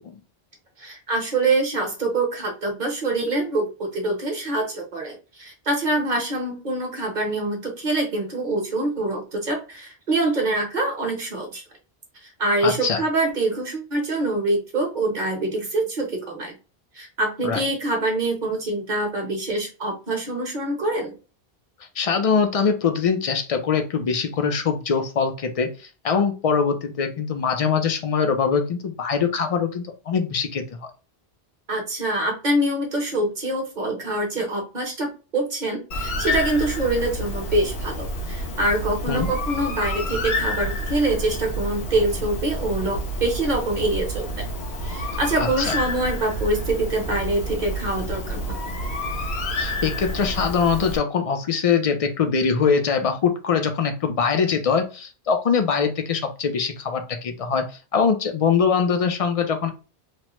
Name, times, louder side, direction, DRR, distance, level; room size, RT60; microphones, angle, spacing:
voice 1, 0.8-11.6 12.4-16.5 16.9-21.1 31.7-44.5 44.8-48.6, right 2 dB, 50° right, 2 dB, 1.0 m, -25 dB
voice 2, 12.6-13.0 17.4-17.6 22.0-25.7 26.0-30.8 39.1-39.3 45.4-45.8 49.6-57.7 57.9-59.7, left 6 dB, 50° left, 6 dB, 0.4 m, -22 dB
Bird, 35.9-51.0, left 1 dB, 90° left, 1.2 m, -29 dB
3.1 x 2.1 x 2.9 m, 0.33 s
omnidirectional pair, 1.1 m